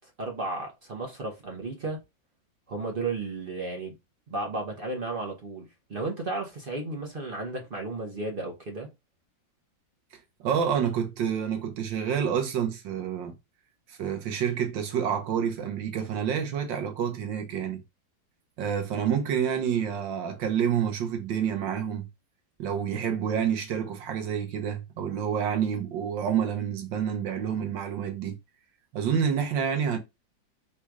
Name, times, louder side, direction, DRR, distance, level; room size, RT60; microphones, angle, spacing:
voice 1, 0.2-2.0 2.7-3.9 4.3-8.9, right 3 dB, 50° right, 0.6 m, -33 dB
voice 2, 10.4-13.3 13.9-17.8 18.6-22.1 22.6-28.4 28.9-30.0, right 8 dB, 75° right, 1.6 m, -28 dB
4.3 x 2.4 x 4.6 m
omnidirectional pair, 2.1 m